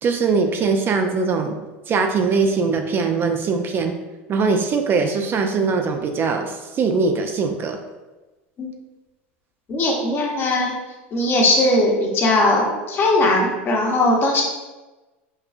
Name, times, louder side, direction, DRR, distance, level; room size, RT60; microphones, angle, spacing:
voice 1, 0.0-1.6 1.9-4.0 4.3-7.8, right 4 dB, 35° right, 5 dB, 0.4 m, -21 dB
voice 2, 9.7-10.7 11.1-14.4, left 2 dB, 35° left, -1 dB, 0.9 m, -19 dB
5.3 x 2.2 x 2.4 m, 1.1 s
hypercardioid pair, 100°, 6 cm